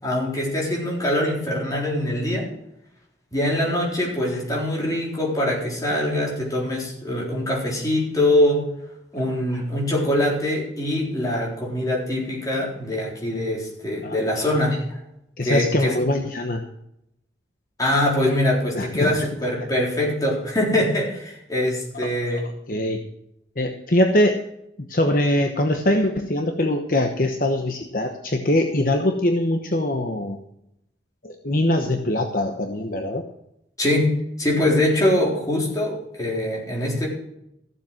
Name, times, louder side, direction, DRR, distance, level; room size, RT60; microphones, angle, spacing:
voice 1, 0.0-2.5 3.3-8.7 9.1-15.0 15.4-16.0 17.8-22.5 33.8-37.1, left 1 dB, 20° left, -3 dB, 4.0 m, -23 dB
voice 2, 15.4-16.6 18.7-19.2 22.0-22.1 22.7-23.0 23.6-24.4 24.9-30.4 31.2-33.2, left 1 dB, 50° left, 4 dB, 1.0 m, -22 dB
15.0 x 7.5 x 6.4 m, 0.80 s
head